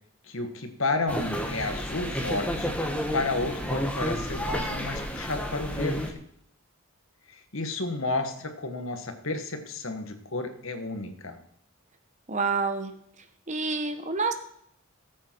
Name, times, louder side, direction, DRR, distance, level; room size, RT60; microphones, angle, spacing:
voice 1, 0.3-2.8 3.1-6.2 7.3-11.4, left 2 dB, 65° left, 7 dB, 1.6 m, -32 dB
sound 1, 1.1-6.1, equal, 5° left, 1.3 m, -31 dB
voice 2, 12.3-12.9 13.5-14.3, right 4 dB, 30° right, 8 dB, 1.1 m, -28 dB
18.0 x 8.5 x 4.6 m, 0.70 s
head